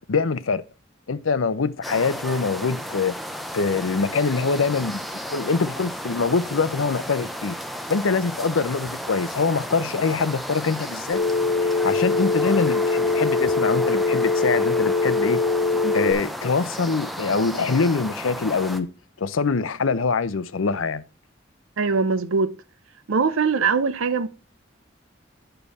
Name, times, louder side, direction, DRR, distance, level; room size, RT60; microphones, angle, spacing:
voice 1, 0.1-0.6 1.1-3.1 3.5-5.0 5.3-7.5 7.9-11.2 11.6-15.4 15.9-18.9 19.2-21.0, left 4 dB, 90° left, 0.7 m, -24 dB
sound 1, 1.8-18.8, equal, ahead, 0.6 m, -33 dB
Telephone, 11.1-16.1, left 3 dB, 35° left, 1.2 m, -22 dB
voice 2, 21.8-22.5 23.1-24.3, right 5 dB, 85° right, 0.6 m, -22 dB
9.2 x 6.7 x 4.1 m
head